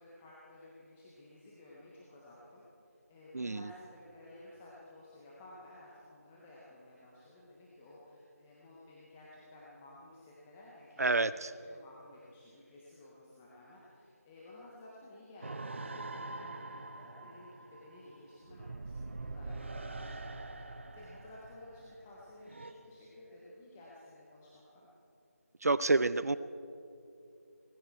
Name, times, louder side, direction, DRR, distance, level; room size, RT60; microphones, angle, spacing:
voice 1, 0.0-11.3 11.7-20.7 20.9-24.9, left 1 dB, 5° left, -6 dB, 0.5 m, -54 dB
voice 2, 11.0-11.5 25.6-26.4, right 3 dB, 70° right, 15 dB, 0.5 m, -28 dB
sound 1, 15.4-22.7, right 2 dB, 45° right, 1.0 m, -44 dB
18.5 x 16.0 x 4.5 m, 2.6 s
figure-of-eight pair, 170°, 9 cm